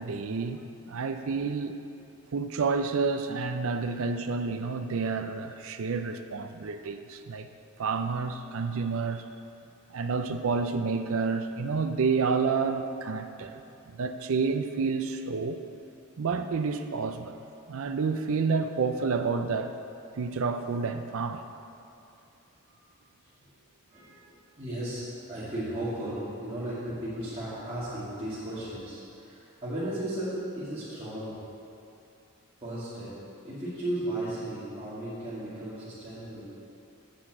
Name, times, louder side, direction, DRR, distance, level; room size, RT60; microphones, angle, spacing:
voice 1, 0.0-1.8 2.3-7.5 7.8-9.3 9.9-13.6 13.9-15.6 16.2-17.4 17.7-19.8 20.2-21.4, right 4 dB, 65° right, 7 dB, 0.5 m, -29 dB
voice 2, 23.9-31.5 32.6-36.4, right 1 dB, 25° right, -13 dB, 2.3 m, -35 dB
8.4 x 6.0 x 7.6 m, 2.7 s
head